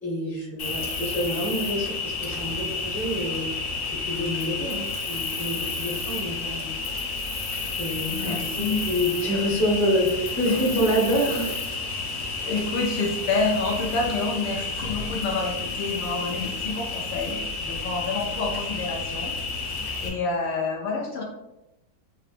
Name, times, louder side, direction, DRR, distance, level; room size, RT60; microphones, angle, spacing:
voice 1, 0.0-3.5 3.9-6.7 7.7-11.6, equal, 5° left, -5 dB, 0.4 m, -27 dB
Cricket, 0.6-20.1, left 4 dB, 55° left, 0.9 m, -31 dB
voice 2, 8.1-8.9 10.5-10.9 12.5-19.4 20.0-21.2, left 3 dB, 80° left, -2 dB, 1.3 m, -28 dB
6.2 x 2.1 x 2.5 m, 0.94 s
omnidirectional pair, 2.0 m